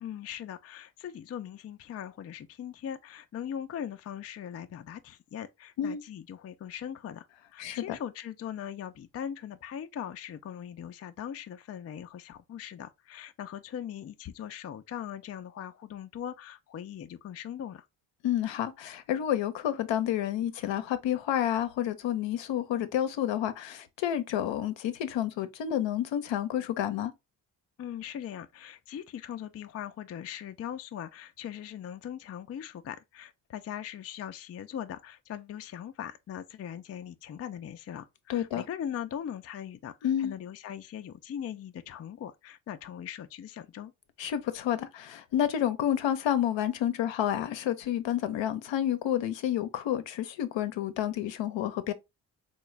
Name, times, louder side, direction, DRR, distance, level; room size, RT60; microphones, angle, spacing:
voice 1, 0.0-7.3 7.5-17.9 27.8-43.9, left 9 dB, 35° left, 0.4 m, -40 dB
voice 2, 7.6-8.0 18.2-27.1 38.3-38.6 40.0-40.3 44.2-51.9, left 10 dB, 65° left, 0.7 m, -29 dB
3.8 x 2.3 x 3.1 m
hypercardioid pair, 40°, 48 cm